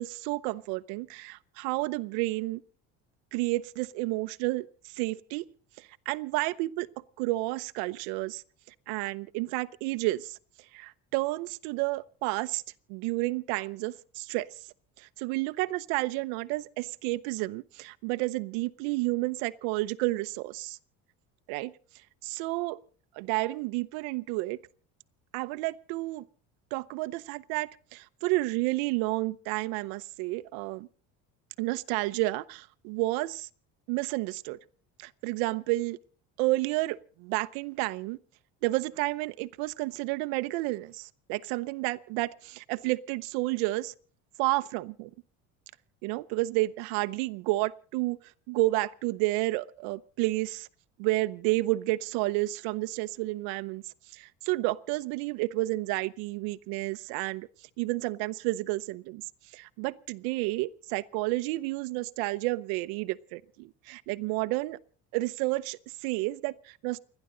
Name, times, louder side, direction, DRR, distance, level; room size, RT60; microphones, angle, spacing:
voice 1, 0.0-2.6 3.3-5.4 5.8-6.9 7.2-10.4 10.7-12.6 12.9-14.7 15.0-20.8 21.5-21.7 22.2-22.8 23.1-24.6 25.3-26.3 26.7-30.9 31.6-33.5 33.9-34.6 35.0-36.0 36.4-38.2 38.6-43.9 44.4-45.1 46.0-50.7 51.0-57.5 57.8-64.8 65.1-67.0, right 20 dB, 90° right, 0.8 m, -31 dB
29.5 x 11.0 x 3.9 m
cardioid pair, 145°, 36 cm